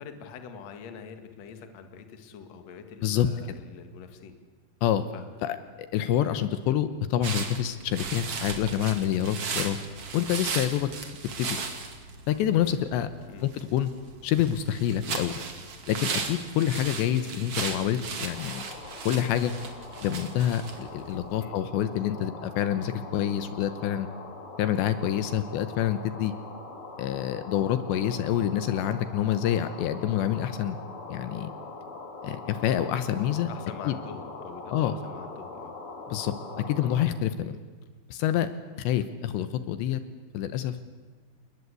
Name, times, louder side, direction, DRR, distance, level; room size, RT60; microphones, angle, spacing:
voice 1, 0.0-4.4 5.1-5.6 13.3-13.5 17.1-17.3 21.4-21.6 33.5-35.8 36.9-37.0, left 6 dB, 50° left, 7 dB, 2.2 m, -44 dB
voice 2, 5.9-9.8 10.1-10.9 11.4-11.6 12.3-13.1 13.4-13.9 14.2-15.4 15.9-18.6 19.1-19.5 20.0-24.1 24.6-26.3 27.0-30.8 31.1-31.5 32.2-33.5 33.9-34.0 34.7-34.9 36.1-36.3 36.7-37.5 38.1-38.5 38.8-40.0 40.3-40.8, left 11 dB, 75° left, 11 dB, 3.0 m, -27 dB
sound 1, 7.2-21.5, right 5 dB, 45° right, 2.3 m, -36 dB
sound 2, 18.2-37.1, left 3 dB, 35° left, 3.2 m, -42 dB
29.0 x 20.5 x 8.3 m, 1.4 s
omnidirectional pair, 5.4 m